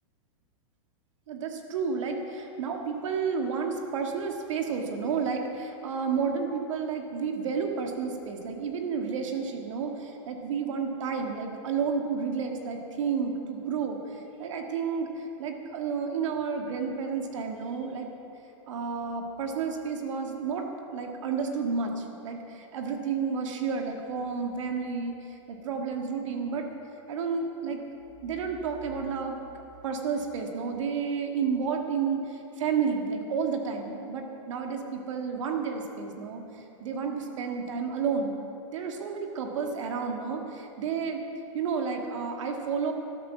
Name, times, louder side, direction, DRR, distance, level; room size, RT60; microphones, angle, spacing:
voice 1, 1.3-18.1 18.7-20.7 20.9-26.7 27.1-27.8 28.2-29.4 29.8-38.4 38.7-41.2 41.5-42.9, right 5 dB, 70° right, 3 dB, 1.9 m, -31 dB
13.0 x 12.5 x 6.1 m, 2.8 s
supercardioid pair, 170°, 16 cm